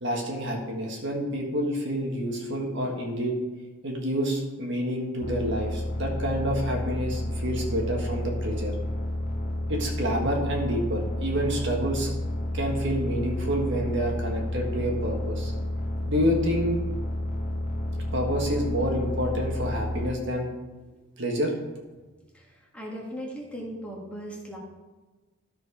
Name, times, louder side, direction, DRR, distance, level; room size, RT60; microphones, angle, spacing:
voice 1, 0.0-3.3 3.8-8.7 9.7-12.1 12.5-15.5 16.1-16.8 18.1-20.5 21.2-21.5, equal, 55° right, 0 dB, 1.6 m, -28 dB
sound 1, 5.2-20.1, left 1 dB, 35° left, 0.9 m, -30 dB
voice 2, 22.7-24.6, equal, 5° left, -3 dB, 1.6 m, -37 dB
13.0 x 4.5 x 4.8 m, 1.2 s
head